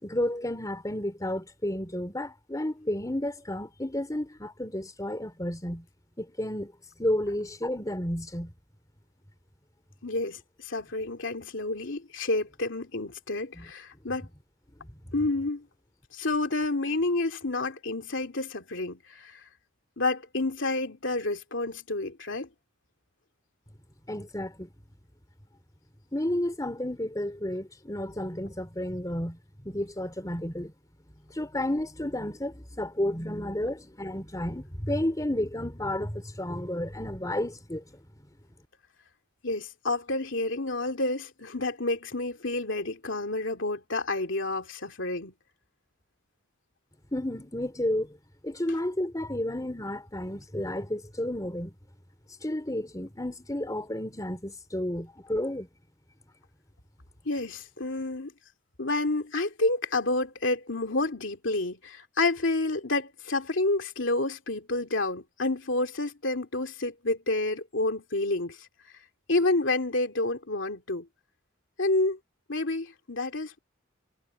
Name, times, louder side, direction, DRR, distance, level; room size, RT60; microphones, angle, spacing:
voice 1, 0.0-5.9 6.2-6.7 7.0-8.5 13.6-13.7 24.1-24.7 26.1-30.7 31.3-38.0 47.1-48.2 48.4-51.7 52.4-55.7, left 1 dB, 20° left, 3.7 m, -31 dB
voice 2, 10.0-14.3 15.1-15.7 16.1-19.4 20.0-22.5 39.4-45.3 57.2-58.3 58.8-68.7 69.3-71.1 71.8-72.2 72.5-73.6, left 2 dB, 65° left, 2.9 m, -29 dB
head